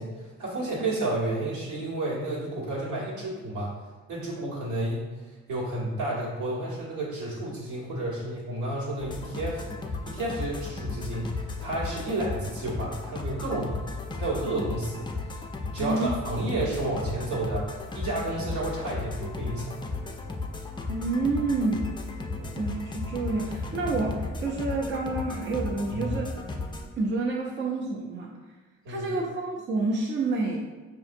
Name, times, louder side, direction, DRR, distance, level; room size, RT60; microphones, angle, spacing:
voice 1, 0.0-3.7 4.1-5.0 5.5-9.7 10.1-13.7 14.1-15.0 15.7-19.8 22.3-22.5 25.9-26.1 28.8-29.1, right 2 dB, 80° right, -6 dB, 1.5 m, -31 dB
sound 1, 9.0-26.9, left 3 dB, 15° left, 0.4 m, -35 dB
voice 2, 15.8-16.1 20.9-21.9 22.6-26.3 27.0-28.3 28.9-30.6, right 3 dB, 40° right, -1 dB, 0.6 m, -28 dB
4.8 x 2.6 x 2.6 m, 1.3 s
cardioid pair, 90°, 30 cm